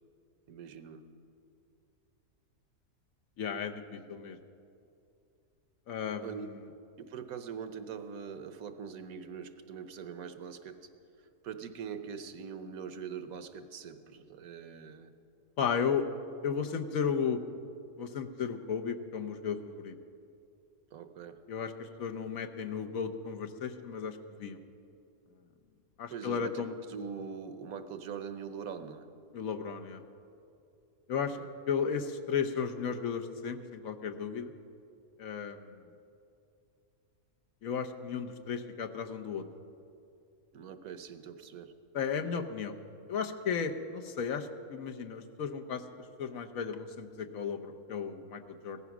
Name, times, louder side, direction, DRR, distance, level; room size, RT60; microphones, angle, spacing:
voice 1, 0.5-1.0 6.2-6.5 7.0-10.9 11.4-15.1 20.9-21.4 26.1-26.6 26.9-29.1 31.4-31.5 40.5-41.7, right 6 dB, 80° right, 10 dB, 1.3 m, -42 dB
voice 2, 3.4-4.4 5.9-6.4 15.6-16.0 16.4-17.4 18.0-19.9 21.5-24.6 26.0-26.7 29.3-30.0 31.1-31.4 31.7-34.5 35.2-35.8 37.6-39.4 41.9-42.7 43.1-45.8 46.2-48.8, left 6 dB, 70° left, 6 dB, 1.3 m, -34 dB
16.5 x 14.0 x 6.1 m, 2.5 s
omnidirectional pair, 1.5 m